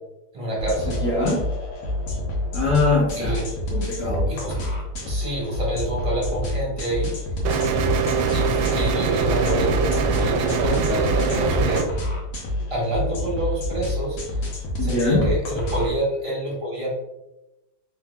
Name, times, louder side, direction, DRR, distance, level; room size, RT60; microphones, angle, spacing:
voice 1, 0.3-1.0 3.2-3.9 4.3-4.5 5.0-7.1 8.3-9.9 10.2-12.0 12.7-14.2 14.8-16.9, right 1 dB, 20° right, -4 dB, 1.0 m, -27 dB
sound 1, 0.6-15.9, left 1 dB, 85° left, 1.9 m, -28 dB
voice 2, 0.9-1.4 2.5-3.4 3.7-4.2 14.8-15.2, left 3 dB, 55° left, -6 dB, 1.4 m, -22 dB
sound 2, 7.4-11.8, right 5 dB, 75° right, 1.2 m, -23 dB
4.8 x 3.9 x 2.3 m, 0.94 s
omnidirectional pair, 2.3 m